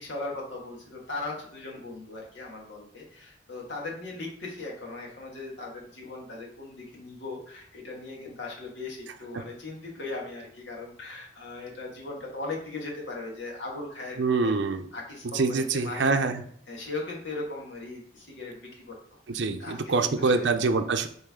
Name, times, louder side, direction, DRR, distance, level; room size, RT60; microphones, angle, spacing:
voice 1, 0.0-14.5 14.9-16.1 16.7-20.5, left 3 dB, 80° left, -1 dB, 1.9 m, -38 dB
voice 2, 14.2-14.8 15.3-16.4 19.3-21.1, right 4 dB, 75° right, 6 dB, 0.6 m, -25 dB
7.3 x 3.9 x 3.7 m, 0.63 s
head